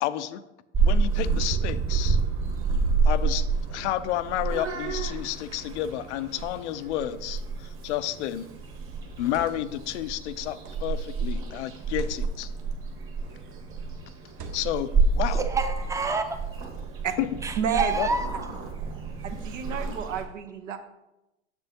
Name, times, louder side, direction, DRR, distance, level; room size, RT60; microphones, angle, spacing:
voice 1, 0.0-0.4 0.8-2.2 3.0-8.4 9.2-12.5 14.5-14.9 15.1-15.5 17.2-17.3 17.9-18.1, left 12 dB, 70° left, 13 dB, 0.5 m, -30 dB
Purr / Meow, 0.7-20.2, right 4 dB, 35° right, 1.4 m, -29 dB
sound 1, 7.9-8.2 9.1-9.8 10.6-11.0 11.8-12.2 13.1-13.5 14.3-14.9, right 4 dB, 50° right, 1.3 m, -44 dB
voice 2, 15.3-16.4 17.4-18.4, right 4 dB, 10° right, 8 dB, 0.6 m, -28 dB
voice 3, 17.6-17.9 19.2-20.8, right 7 dB, 80° right, 7 dB, 0.9 m, -30 dB
7.0 x 6.7 x 2.8 m, 0.92 s
hypercardioid pair, 95°, 37 cm